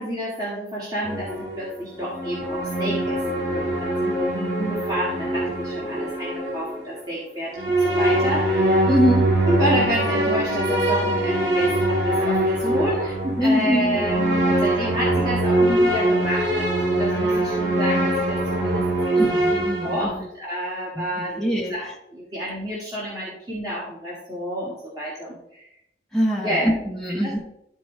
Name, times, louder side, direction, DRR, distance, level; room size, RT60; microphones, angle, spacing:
voice 1, 0.0-8.9 9.4-19.4 19.8-21.4 21.7-25.6 26.4-26.7 27.2-27.4, equal, 20° right, -7 dB, 1.8 m, -29 dB
sound 1, 1.0-6.9 7.5-20.0, right 1 dB, 85° right, 2.1 m, -23 dB
voice 2, 8.9-9.3 13.4-14.0 19.1-20.2 21.4-21.7 26.1-27.4, equal, 5° left, -3 dB, 0.9 m, -23 dB
13.0 x 4.5 x 3.2 m, 0.82 s
head